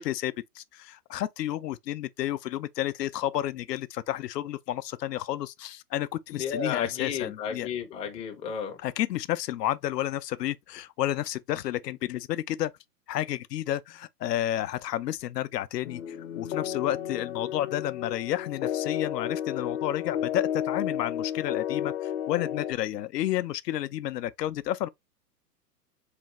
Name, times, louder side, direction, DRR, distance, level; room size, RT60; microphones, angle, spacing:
voice 1, 0.0-7.7 8.8-12.7 13.1-24.9, left 13 dB, 80° left, 0.5 m, -31 dB
voice 2, 6.3-8.8, left 7 dB, 15° left, 0.5 m, -33 dB
sound 1, 15.8-22.7, left 10 dB, 55° left, 0.9 m, -32 dB
3.8 x 3.3 x 3.0 m
hypercardioid pair, 120°, 49 cm